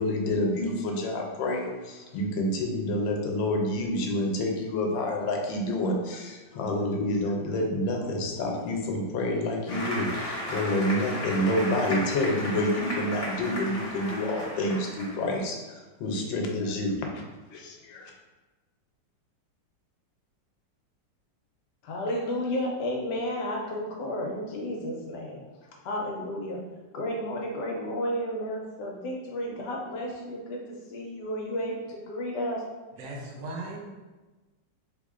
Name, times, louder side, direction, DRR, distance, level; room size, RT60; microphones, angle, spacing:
voice 1, 0.0-16.9 17.5-18.1, left 1 dB, 90° left, 1 dB, 1.4 m, -28 dB
Applause, 9.7-15.3, left 1 dB, 50° left, 0.4 m, -35 dB
voice 2, 21.8-25.4 25.8-26.6 26.9-32.6, left 1 dB, 75° left, -1 dB, 1.2 m, -32 dB
voice 3, 33.0-33.8, right 2 dB, 70° right, -1 dB, 1.2 m, -37 dB
3.5 x 3.3 x 2.4 m, 1.2 s
omnidirectional pair, 2.0 m